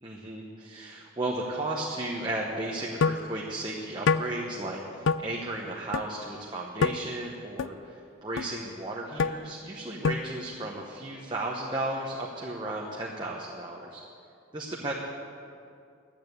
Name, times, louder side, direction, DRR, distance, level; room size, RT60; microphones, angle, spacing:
voice 1, 0.0-14.0 14.5-14.9, right 2 dB, 20° right, -3 dB, 1.0 m, -34 dB
sound 1, 3.0-3.2 4.1-4.3 5.1-5.2 5.9-6.0 6.8-7.0 7.6-7.7 8.4-8.5 9.2-9.3 10.0-10.3, left 5 dB, 65° left, 0.4 m, -24 dB
11.5 x 8.8 x 8.0 m, 2.5 s
head